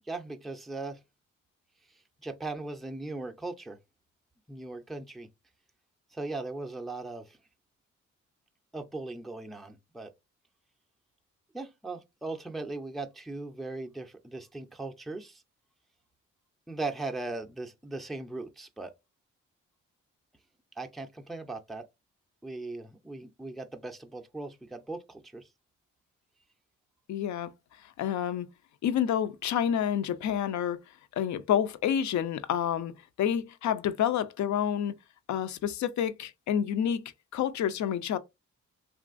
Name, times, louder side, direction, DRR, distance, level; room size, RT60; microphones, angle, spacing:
voice 1, 0.1-1.0 2.2-3.8 4.5-5.3 6.1-7.4 8.7-10.1 11.5-15.4 16.7-18.9 20.8-21.8 22.4-25.5, right 2 dB, ahead, 0.4 m, -38 dB
voice 2, 27.1-27.5 28.0-28.5 28.8-30.8 31.2-32.9 33.2-34.9 35.3-38.2, left 9 dB, 60° left, 0.5 m, -28 dB
2.9 x 2.4 x 2.4 m
supercardioid pair, 55°, 32 cm